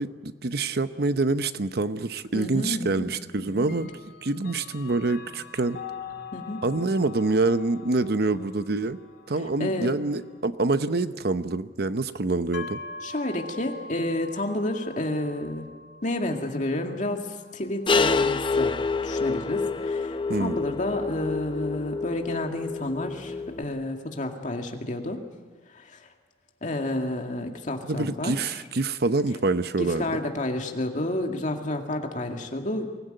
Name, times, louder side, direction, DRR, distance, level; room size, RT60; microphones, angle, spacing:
voice 1, 0.0-3.9 4.2-5.8 6.6-9.0 9.3-12.8 20.3-20.6 27.8-30.1, right 3 dB, 60° right, 12 dB, 0.8 m, -26 dB
Clock, 2.2-2.3 3.6-10.4, left 7 dB, 65° left, 3.1 m, -44 dB
voice 2, 2.3-3.0 3.5-3.7 6.3-6.6 9.6-9.9 13.0-15.7 16.0-18.7 19.0-25.2 25.7-26.1 26.6-28.4 29.8-32.9, left 1 dB, 45° left, 3 dB, 2.2 m, -30 dB
sound 1, 12.5-26.2, left 2 dB, 85° left, 1.8 m, -46 dB
sound 2, 17.9-23.6, left 4 dB, 30° left, 0.6 m, -27 dB
23.5 x 16.0 x 9.1 m, 1.4 s
head